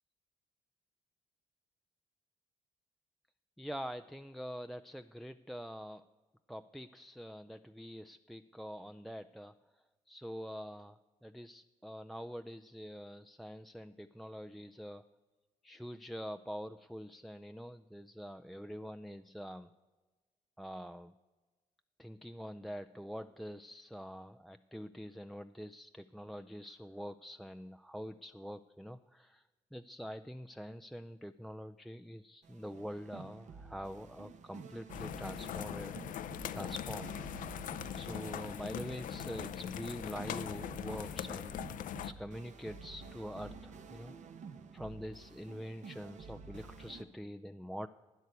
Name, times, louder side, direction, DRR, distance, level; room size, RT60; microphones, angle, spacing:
voice 1, 3.6-6.0 6.5-9.5 10.1-15.0 15.6-19.7 20.6-21.1 22.0-29.4 29.7-36.0 36.5-37.2 37.9-41.6 41.9-44.1 44.7-47.9, equal, ahead, 8 dB, 0.4 m, -45 dB
sound 1, 32.4-47.0, right 4 dB, 60° right, 1.1 m, -51 dB
sound 2, 34.9-42.1, left 10 dB, 75° left, 0.5 m, -41 dB
12.5 x 9.1 x 8.2 m, 1.2 s
cardioid pair, 75°, 14 cm